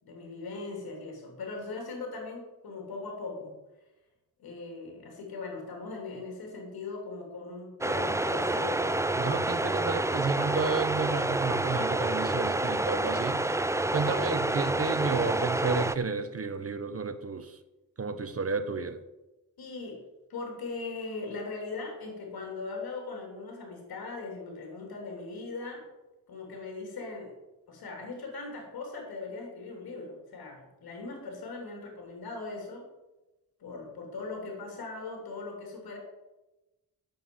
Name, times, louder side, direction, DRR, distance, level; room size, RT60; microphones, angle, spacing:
voice 1, 0.0-3.5 4.4-9.0 19.6-20.0 20.3-25.9 26.3-27.3 27.7-32.9 33.6-36.0, left 3 dB, 85° left, 1 dB, 3.2 m, -39 dB
sound 1, 7.8-16.0, right 2 dB, 10° right, 0.6 m, -28 dB
voice 2, 9.1-13.6 13.9-17.6 18.0-19.0, right 4 dB, 40° right, 10 dB, 1.2 m, -32 dB
8.7 x 6.7 x 7.7 m, 1.0 s
cardioid pair, 55°, 36 cm